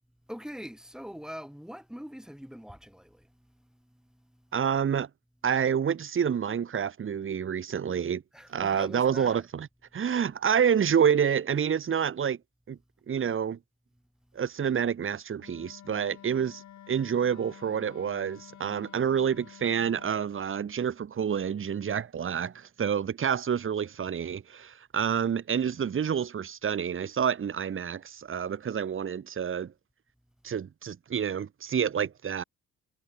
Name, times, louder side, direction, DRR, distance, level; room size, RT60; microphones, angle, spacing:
voice 1, 0.3-4.6 8.3-9.5 14.3-14.4, equal, ahead, 5.1 m, -44 dB
voice 2, 4.5-5.1 5.4-8.2 8.5-9.7 9.9-12.4 12.7-12.8 13.1-13.6 14.3-16.6 16.9-29.7 30.4-32.4, right 8 dB, 45° right, 1.7 m, -28 dB
Wind instrument woodwind instrument, 15.4-20.3, left 11 dB, 70° left, 7.9 m, -51 dB
cardioid pair, 90°, 30 cm